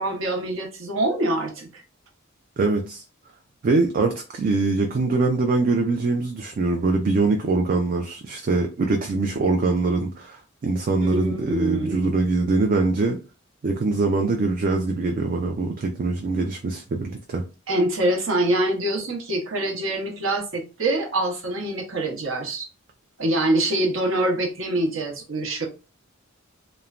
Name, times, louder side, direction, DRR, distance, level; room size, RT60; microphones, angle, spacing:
voice 1, 0.0-1.8 11.0-12.2 17.7-22.7 23.2-25.7, right 1 dB, 70° right, 0.8 m, -25 dB
voice 2, 2.6-3.0 3.6-13.2 13.6-17.4, right 3 dB, 45° right, 0.4 m, -23 dB
3.0 x 2.1 x 2.4 m
head